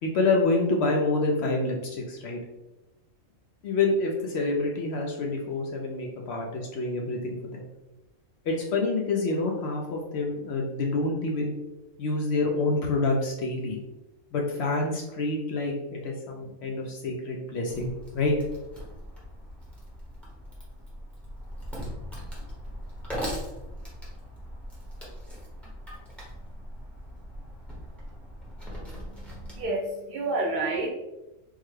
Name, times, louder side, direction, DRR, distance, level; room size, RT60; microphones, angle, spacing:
voice 1, 0.0-2.4 3.6-7.6 8.5-11.5 12.0-13.8 14.3-18.3, left 3 dB, 65° left, 0 dB, 0.7 m, -27 dB
Wood, 17.7-29.6, equal, ahead, 0.7 m, -40 dB
voice 2, 28.9-30.9, right 2 dB, 50° right, -1 dB, 0.6 m, -30 dB
3.6 x 2.1 x 3.1 m, 1.0 s
omnidirectional pair, 1.4 m